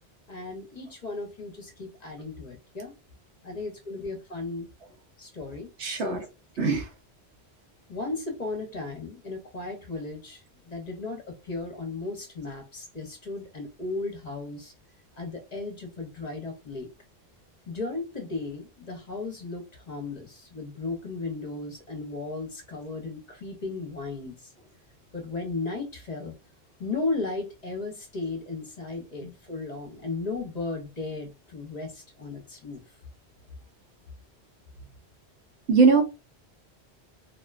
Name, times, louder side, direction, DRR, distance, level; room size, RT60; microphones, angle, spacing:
voice 1, 0.3-2.9 3.4-4.7 5.2-5.7 6.0-6.2 6.6-6.7 7.9-10.4 10.7-14.7 15.2-16.9 17.7-24.4 25.1-26.3 26.8-32.8, left 3 dB, 45° left, 0.7 m, -35 dB
voice 2, 5.8-6.2 6.6-6.9 29.2-29.3 35.7-36.0, right 4 dB, 80° right, 1.0 m, -21 dB
2.5 x 2.1 x 2.3 m
omnidirectional pair, 1.1 m